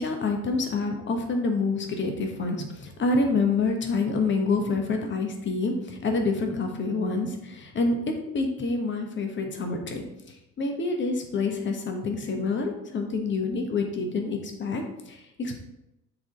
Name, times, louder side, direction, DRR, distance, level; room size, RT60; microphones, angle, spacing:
voice 1, 0.0-8.0 8.3-10.1 10.6-15.6, left 3 dB, 25° left, 4 dB, 1.2 m, -27 dB
7.7 x 4.0 x 3.8 m, 0.90 s
figure-of-eight pair, 60°, 42 cm